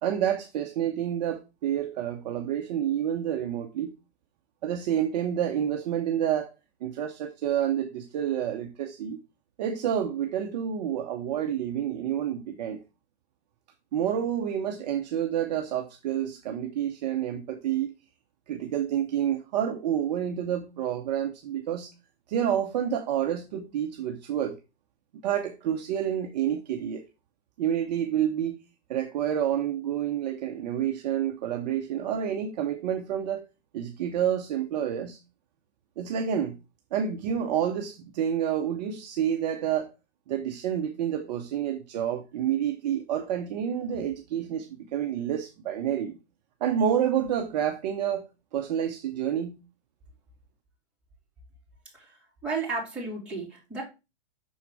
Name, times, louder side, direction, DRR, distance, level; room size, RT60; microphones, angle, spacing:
voice 1, 0.0-3.9 4.6-6.5 6.8-9.2 9.6-12.8 13.9-17.9 18.5-21.9 22.3-24.6 25.2-27.0 27.6-28.6 28.9-33.4 33.7-35.2 36.0-36.6 36.9-39.9 40.3-46.2 46.6-49.6, right 9 dB, 40° right, 0.8 m, -29 dB
voice 2, 52.4-53.8, right 4 dB, 5° right, 2.8 m, -33 dB
6.2 x 4.0 x 4.7 m
hypercardioid pair, 155°, 34 cm